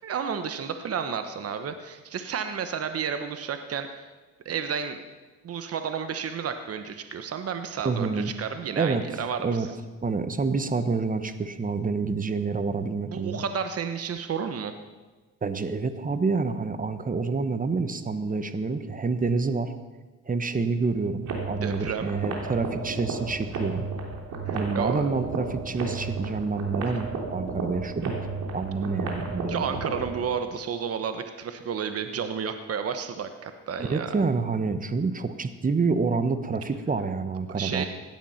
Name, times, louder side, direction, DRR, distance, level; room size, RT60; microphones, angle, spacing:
voice 1, 0.0-4.1 4.4-5.0 5.4-9.7 13.0-14.7 21.6-22.1 24.4-25.1 29.5-34.1 37.5-37.9, right 7 dB, 50° right, 8 dB, 1.1 m, -31 dB
voice 2, 7.8-8.3 8.8-9.7 10.0-13.4 15.4-19.7 20.3-23.9 24.5-28.1 28.5-29.8 33.8-37.9, right 4 dB, 25° right, 11 dB, 1.2 m, -28 dB
sound 1, 21.2-30.2, right 4 dB, 75° right, 3.2 m, -33 dB
16.5 x 11.0 x 5.8 m, 1.2 s
cardioid pair, 90°, 30 cm